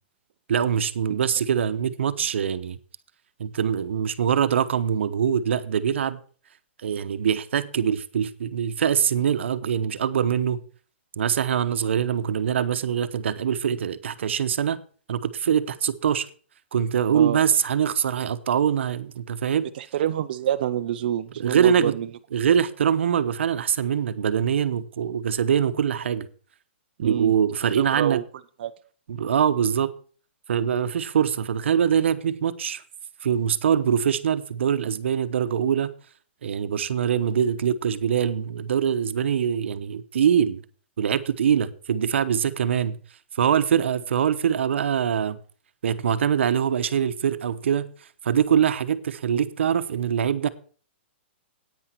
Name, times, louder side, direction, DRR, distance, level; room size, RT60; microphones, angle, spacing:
voice 1, 0.5-2.8 3.4-6.2 6.8-10.6 11.2-14.8 15.1-16.3 16.7-19.7 21.4-21.9 22.3-26.3 27.0-28.2 29.1-29.9 30.5-32.8 33.2-35.9 36.4-40.6 41.0-43.0 43.4-45.4 45.8-47.9 48.2-50.5, right 8 dB, 80° right, 0.9 m, -23 dB
voice 2, 19.7-22.1 27.0-27.3 27.8-28.2 28.6-28.7, right 11 dB, 50° right, 0.5 m, -27 dB
10.0 x 9.2 x 4.5 m
hypercardioid pair, 170°, 6 cm